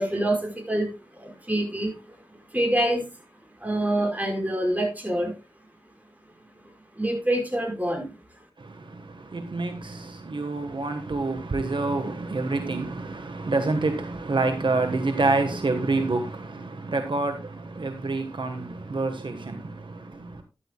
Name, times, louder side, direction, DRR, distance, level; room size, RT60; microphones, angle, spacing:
voice 1, 0.0-3.1 3.6-5.3 6.6-8.1, right 1 dB, 20° right, 5.3 m, -26 dB
voice 2, 8.6-20.4, right 3 dB, 70° right, 1.4 m, -28 dB
13.0 x 11.5 x 2.3 m
wide cardioid pair, 60°, 9 cm